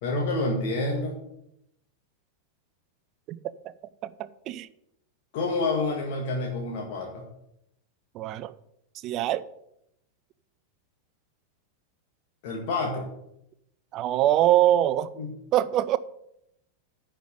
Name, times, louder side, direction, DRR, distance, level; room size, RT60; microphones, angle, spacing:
voice 1, 0.0-1.2 5.3-7.2 12.4-13.1 15.2-15.3, left 2 dB, 50° left, 1.9 m, -28 dB
voice 2, 4.0-4.7 8.1-8.5 9.0-9.4 13.9-15.1 15.5-16.0, right 12 dB, 35° right, 0.5 m, -23 dB
10.0 x 5.1 x 7.8 m
figure-of-eight pair, 90°, 0 cm